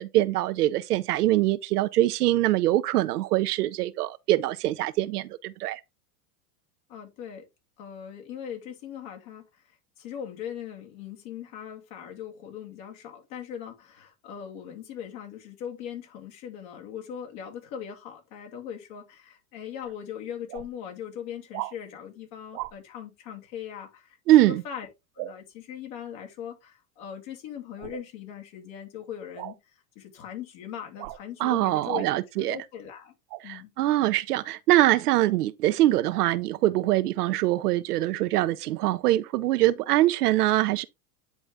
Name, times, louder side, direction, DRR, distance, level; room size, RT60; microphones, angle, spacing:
voice 1, 0.0-5.8 24.3-24.6 31.4-32.6 33.4-40.9, right 15 dB, 85° right, 0.8 m, -23 dB
voice 2, 6.9-7.5 7.8-9.4 10.0-24.9 25.2-29.6 29.9-33.1 33.4-33.7, left 9 dB, 60° left, 2.8 m, -40 dB
sound 1, 19.8-19.9 20.5-20.7 21.5-21.8 22.5-22.7 25.2-25.4 27.8-28.0 29.4-29.6 31.0-31.2 31.9-32.1 33.3-33.4, right 19 dB, 35° right, 0.4 m, -35 dB
9.6 x 4.0 x 3.5 m
supercardioid pair, 130°, 45 cm